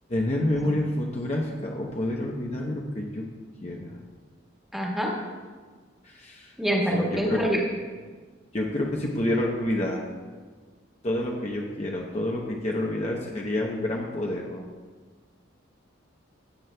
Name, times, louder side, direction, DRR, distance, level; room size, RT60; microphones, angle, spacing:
voice 1, 0.1-3.3 3.6-4.0 6.0-6.5 6.8-7.4 8.5-10.0 11.0-14.7, left 1 dB, 35° left, -1 dB, 0.8 m, -28 dB
voice 2, 4.7-5.1 6.6-7.6, equal, ahead, -3 dB, 1.5 m, -26 dB
15.5 x 9.2 x 2.2 m, 1.5 s
head